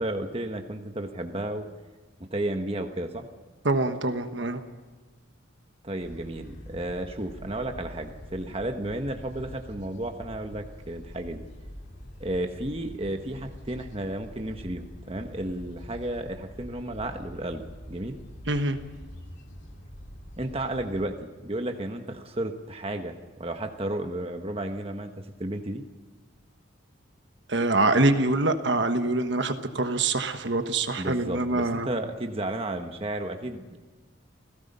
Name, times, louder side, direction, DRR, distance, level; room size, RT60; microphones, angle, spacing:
voice 1, 0.0-1.7 2.2-3.3 5.8-11.4 12.2-18.2 20.4-25.1 25.4-25.8 31.0-33.8, right 1 dB, 30° right, 5 dB, 1.2 m, -33 dB
voice 2, 3.6-4.6 18.5-18.8 27.5-31.9, right 2 dB, 60° right, 7 dB, 1.3 m, -25 dB
sound 1, 6.0-21.0, equal, 55° left, 3.2 m, -45 dB
28.5 x 17.0 x 5.5 m, 1.4 s
head